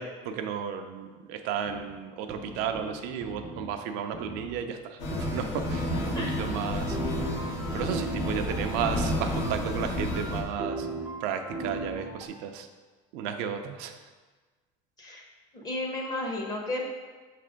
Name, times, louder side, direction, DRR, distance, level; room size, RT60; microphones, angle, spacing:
voice 1, 0.0-7.0 7.7-10.9 11.2-12.7 13.1-14.0, right 7 dB, 65° right, 6 dB, 0.5 m, -33 dB
sound 1, 1.7-1.8 2.3-3.7 4.1-4.6 5.1-5.5 6.0-12.3, right 2 dB, 10° right, 0.5 m, -38 dB
sound 2, 5.0-10.4, left 1 dB, 55° left, 1.1 m, -31 dB
voice 2, 15.6-16.8, left 1 dB, 20° left, -1 dB, 1.0 m, -32 dB
5.8 x 3.3 x 5.0 m, 1.4 s
cardioid pair, 155°, 18 cm